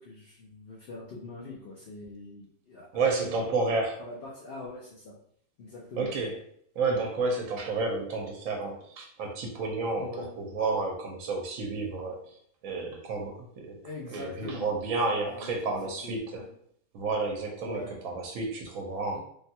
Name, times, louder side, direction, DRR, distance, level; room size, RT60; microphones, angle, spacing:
voice 1, 0.0-3.6 4.0-5.1 5.6-6.1 10.0-10.3 13.8-16.5 17.6-18.0 19.1-19.2, left 2 dB, 55° left, -5 dB, 0.7 m, -43 dB
voice 2, 2.9-4.0 6.0-6.3 6.8-12.4 12.6-13.8 14.1-16.4 16.9-19.2, right 3 dB, 80° right, 1 dB, 1.0 m, -31 dB
3.3 x 2.2 x 2.7 m, 0.66 s
omnidirectional pair, 1.4 m